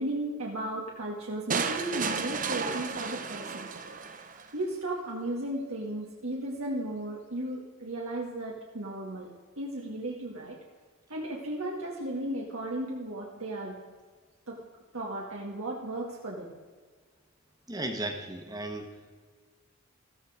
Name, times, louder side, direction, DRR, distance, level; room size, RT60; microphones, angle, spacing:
voice 1, 0.0-3.7 4.2-9.3 9.6-10.6 11.1-13.8 14.5-14.6 14.9-16.5, right 1 dB, 90° right, -3 dB, 2.2 m, -35 dB
sound 1, 1.5-4.5, right 5 dB, 40° right, 1.0 m, -33 dB
voice 2, 17.7-18.9, right 2 dB, 20° right, 4 dB, 1.4 m, -35 dB
15.5 x 14.0 x 5.1 m, 1.5 s
head